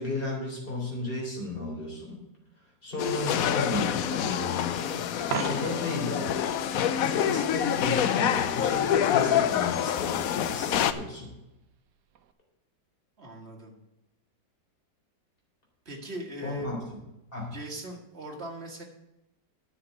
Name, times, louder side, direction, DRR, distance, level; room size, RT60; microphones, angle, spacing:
voice 1, 0.0-2.2 2.8-5.0 5.5-6.3 7.0-11.3 16.4-16.8 17.3-17.5, left 2 dB, 30° left, -2 dB, 3.8 m, -33 dB
sound 1, 3.0-10.9, left 9 dB, 70° left, 0.8 m, -26 dB
Coin (dropping), 5.2-6.1 12.1-12.3, right 8 dB, 70° right, 1.3 m, -34 dB
voice 2, 13.2-13.7 15.9-16.7 17.5-18.8, right 1 dB, 35° right, 1 dB, 2.0 m, -39 dB
9.9 x 6.2 x 8.0 m, 0.92 s
omnidirectional pair, 2.0 m